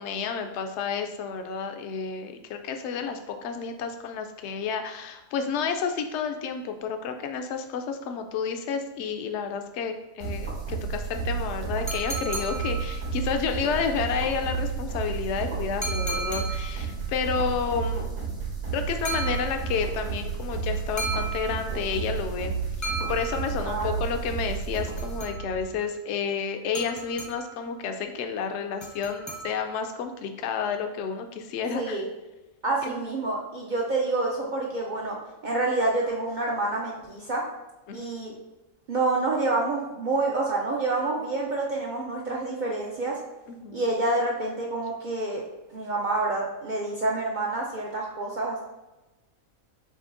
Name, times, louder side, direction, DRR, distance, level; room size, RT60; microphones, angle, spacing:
voice 1, 0.0-18.1 18.7-32.0 32.8-33.0 37.9-38.0 43.5-43.8, left 6 dB, 65° left, 6 dB, 0.7 m, -31 dB
sound 1, 10.2-25.7, right 5 dB, 75° right, 2.2 m, -31 dB
sound 2, 11.9-13.4 15.8-17.0 19.0-19.9 21.0-22.0 22.8-23.8 24.7-25.7 26.7-27.7 28.8-29.9, right 2 dB, 20° left, 0.5 m, -36 dB
voice 2, 23.6-24.0 31.7-32.1 32.6-35.2 35.4-37.5 37.9-38.3 38.9-43.2 43.7-45.4 45.7-48.6, right 2 dB, 55° right, -2 dB, 0.5 m, -28 dB
6.9 x 2.7 x 2.6 m, 1.0 s
omnidirectional pair, 1.4 m